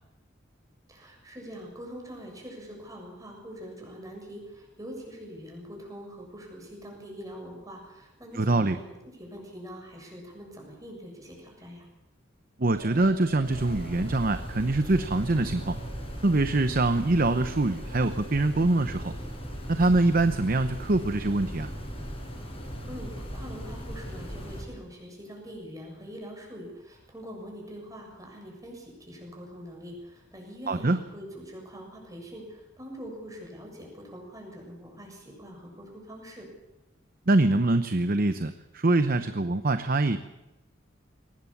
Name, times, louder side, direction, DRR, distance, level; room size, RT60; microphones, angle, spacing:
voice 1, 0.9-8.8 9.1-11.9 22.6-36.5, equal, 20° right, 1 dB, 7.0 m, -43 dB
voice 2, 8.3-8.8 12.6-15.8 16.2-19.1 19.7-21.7 30.7-31.0 37.3-40.2, right 2 dB, 45° right, 10 dB, 0.8 m, -24 dB
sound 1, 12.7-21.3, right 1 dB, 75° right, 3.8 m, -48 dB
sound 2, 13.4-24.6, equal, 30° left, 6.0 m, -38 dB
22.5 x 19.5 x 7.2 m, 1.0 s
head